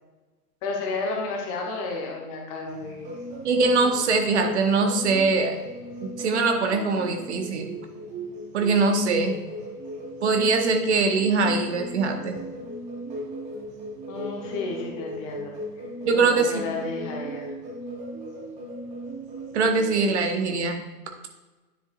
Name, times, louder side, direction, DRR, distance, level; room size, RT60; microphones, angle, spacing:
voice 1, 0.6-3.1 14.1-17.5, left 3 dB, 20° left, 1 dB, 0.9 m, -32 dB
sound 1, 2.7-20.1, right 1 dB, 15° right, 0.9 m, -37 dB
voice 2, 3.4-5.6 6.0-7.8 8.5-9.3 10.2-12.4 16.0-16.6 19.5-20.8, right 4 dB, 40° right, 4 dB, 1.0 m, -22 dB
10.0 x 7.3 x 2.4 m, 1.2 s
figure-of-eight pair, 120°, 50 cm